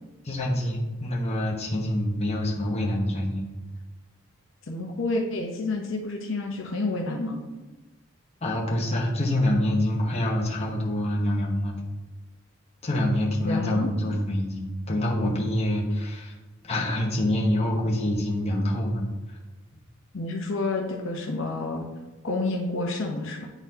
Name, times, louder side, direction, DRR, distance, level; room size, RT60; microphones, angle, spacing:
voice 1, 0.2-3.4 8.4-11.8 12.8-16.4 16.6-19.4, left 1 dB, 30° left, -1 dB, 0.9 m, -26 dB
voice 2, 4.7-7.4 13.4-13.9 20.1-21.9 22.2-23.5, left 2 dB, 65° left, 1 dB, 0.7 m, -29 dB
9.0 x 4.0 x 2.7 m, 1.2 s
head